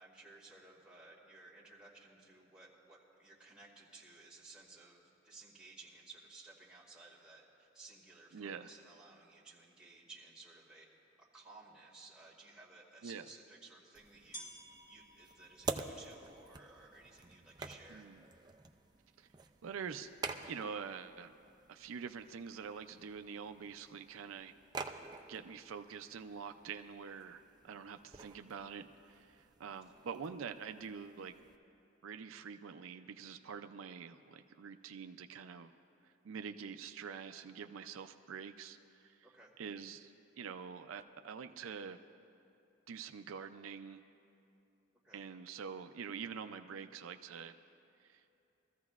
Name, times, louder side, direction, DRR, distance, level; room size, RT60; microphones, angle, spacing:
voice 1, 0.0-10.9 11.2-14.5 14.9-18.1 29.7-30.0 39.2-39.5 45.0-45.2, right 3 dB, 5° right, -6 dB, 2.0 m, -57 dB
voice 2, 8.3-8.7 13.0-13.2 17.9-18.2 19.2-19.3 19.6-20.1 20.5-21.3 21.7-24.5 25.3-31.4 32.0-35.7 36.0-39.3 39.6-42.0 42.9-44.0 45.1-47.5 48.0-48.2, right 6 dB, 85° right, 8 dB, 0.4 m, -46 dB
sound 1, 10.4-10.5 11.2-11.3 13.1-13.2 14.3-19.9, right 1 dB, 20° left, 3.2 m, -57 dB
sound 2, 13.9-31.6, right 3 dB, 20° right, 0.4 m, -49 dB
22.5 x 14.5 x 2.4 m, 2.7 s
head